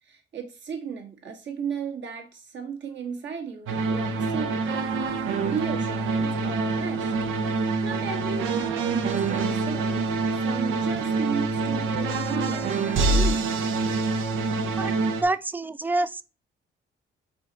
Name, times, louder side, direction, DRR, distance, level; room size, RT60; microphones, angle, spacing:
voice 1, 0.0-4.8 5.1-7.1 7.6-10.1 10.4-13.5, right 6 dB, 65° right, 1.9 m, -35 dB
sound 1, 3.7-15.2, right 3 dB, 85° right, 0.9 m, -26 dB
voice 2, 14.8-16.2, right 2 dB, 10° right, 0.4 m, -27 dB
5.5 x 4.3 x 4.1 m
cardioid pair, 90°, 20 cm